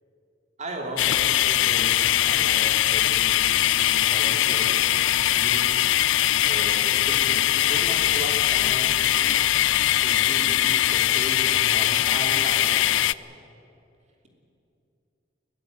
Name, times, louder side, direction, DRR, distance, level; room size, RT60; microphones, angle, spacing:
voice 1, 0.6-5.9 6.4-9.6 10.0-12.9, right 1 dB, 40° right, 1 dB, 3.2 m, -37 dB
sound 1, 1.0-13.1, left 13 dB, 90° left, 0.4 m, -21 dB
21.0 x 15.5 x 9.4 m, 2.7 s
head